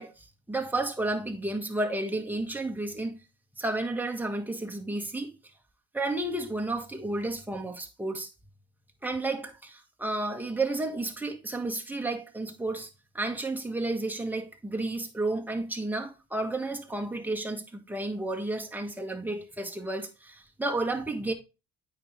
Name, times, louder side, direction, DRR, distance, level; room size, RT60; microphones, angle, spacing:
voice 1, 0.0-3.2 3.6-5.3 5.9-8.3 9.0-12.9 13.1-21.3, right 2 dB, 5° right, 1.5 m, -32 dB
8.4 x 5.1 x 3.2 m
cardioid pair, 90°, 30 cm